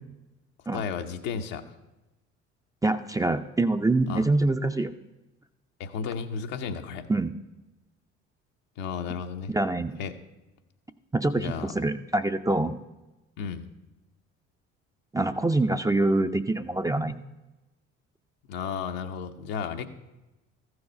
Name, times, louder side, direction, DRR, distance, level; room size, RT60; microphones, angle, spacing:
voice 1, 0.7-1.6 4.1-4.2 5.8-7.0 8.8-9.5 10.0-10.1 11.3-11.7 13.4-13.7 18.5-19.9, left 6 dB, 70° left, 5 dB, 0.9 m, -33 dB
voice 2, 2.8-4.9 7.1-7.3 9.5-10.0 11.1-12.8 15.1-17.2, right 2 dB, 10° right, 8 dB, 0.5 m, -25 dB
14.0 x 4.8 x 5.3 m, 1.0 s
hypercardioid pair, 55°, 35 cm